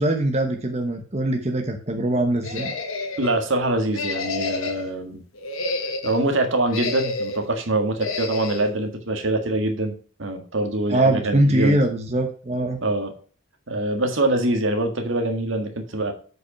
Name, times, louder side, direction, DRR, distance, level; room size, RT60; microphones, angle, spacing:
voice 1, 0.0-2.7 10.9-12.8, right 1 dB, 30° right, 3 dB, 1.1 m, -22 dB
sound 1, 2.4-3.4 3.9-4.9 5.4-6.2 6.7-7.5 8.0-8.7, left 3 dB, 80° left, 1.6 m, -29 dB
voice 2, 3.2-5.2 6.0-11.8 12.8-13.1 13.7-16.1, right 2 dB, 65° right, 6 dB, 1.7 m, -24 dB
7.9 x 5.3 x 5.9 m, 0.42 s
head